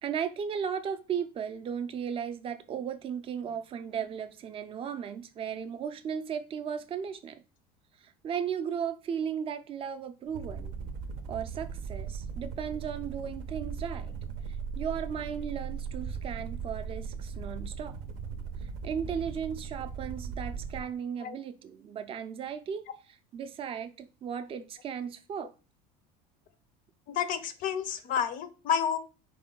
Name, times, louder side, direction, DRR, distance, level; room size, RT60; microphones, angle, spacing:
voice 1, 0.0-7.4 8.0-10.8 11.3-14.2 14.8-18.0 18.8-25.5, right 7 dB, 30° right, 0.4 m, -36 dB
sound 1, 10.2-20.9, right 6 dB, 75° right, 0.6 m, -38 dB
voice 2, 27.1-29.0, left 8 dB, 45° left, 0.5 m, -30 dB
4.4 x 2.2 x 3.8 m
cardioid pair, 135°, 20 cm